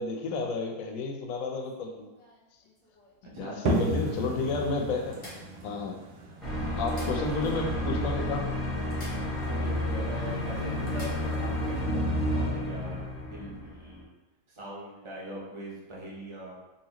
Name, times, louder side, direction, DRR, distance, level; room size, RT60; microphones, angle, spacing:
voice 1, 0.0-2.1 3.4-5.2 5.6-6.0 6.8-8.5, left 3 dB, 70° left, 3 dB, 0.9 m, -31 dB
sound 1, 1.6-3.2 3.9-4.0 4.3-4.4 5.1-6.1 6.7-7.7 8.0-8.1 8.9-9.8 10.1-10.2 10.9-11.4 13.4-13.6, left 1 dB, 25° left, 0.9 m, -50 dB
voice 2, 3.3-3.8 6.2-6.4 9.4-13.0 13.3-14.1 14.5-16.5, right 1 dB, 45° right, -5 dB, 0.3 m, -41 dB
sound 2, 3.7-9.1, right 1 dB, 90° right, 1.1 m, -34 dB
sound 3, 6.4-14.0, left 1 dB, ahead, 0.8 m, -31 dB
4.1 x 2.5 x 2.9 m, 1.1 s
omnidirectional pair, 1.6 m